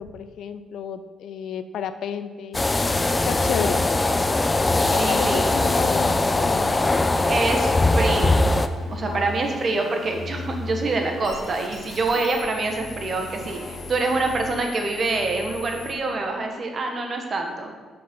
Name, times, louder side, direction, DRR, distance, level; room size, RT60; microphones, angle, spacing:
voice 1, 0.0-2.6 3.2-3.8 4.8-6.7 9.0-9.2 13.4-13.5, left 8 dB, 75° left, 11 dB, 0.5 m, -31 dB
sound 1, 2.5-8.7, left 2 dB, 20° left, 0.5 m, -21 dB
sound 2, 5.0-15.9, left 3 dB, 45° left, 2.6 m, -38 dB
voice 2, 5.0-5.4 7.2-8.5 8.9-17.7, right 3 dB, 45° right, 3 dB, 1.6 m, -26 dB
7.6 x 6.4 x 5.5 m, 1.4 s
cardioid pair, 90°, 0 cm